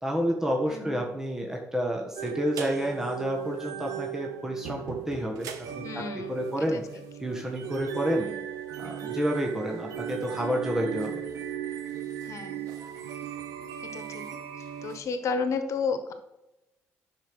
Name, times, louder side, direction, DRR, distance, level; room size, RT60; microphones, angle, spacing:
voice 1, 0.0-6.0 6.3-6.8 7.2-8.3 8.8-11.2, equal, 10° right, 0 dB, 1.5 m, -29 dB
voice 2, 0.6-1.1 5.8-6.8 8.1-8.4 12.3-12.6 13.8-14.2 14.8-16.1, left 4 dB, 60° left, 8 dB, 1.3 m, -33 dB
sound 1, 2.2-15.0, right 9 dB, 85° right, 1.0 m, -37 dB
10.0 x 5.2 x 6.2 m, 0.93 s
cardioid pair, 80°, 6 cm